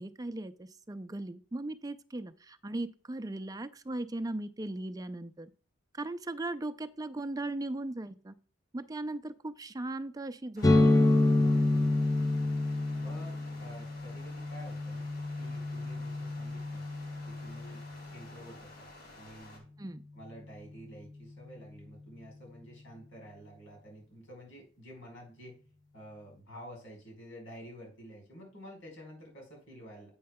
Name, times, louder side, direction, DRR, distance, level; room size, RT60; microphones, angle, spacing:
voice 1, 0.0-5.5 5.9-8.4 8.7-11.0 19.8-20.0, right 2 dB, 20° right, 12 dB, 0.4 m, -38 dB
sound 1, 10.6-19.6, left 2 dB, 50° left, 2.8 m, -52 dB
sound 2, 10.6-18.2, left 2 dB, 20° left, 0.7 m, -28 dB
voice 2, 11.3-11.9 13.0-15.1 15.4-16.8 17.3-17.8 18.1-18.9 19.1-19.6 20.1-25.6 25.9-30.1, equal, 90° left, 0 dB, 4.6 m, -50 dB
9.2 x 8.6 x 2.2 m, 0.41 s
head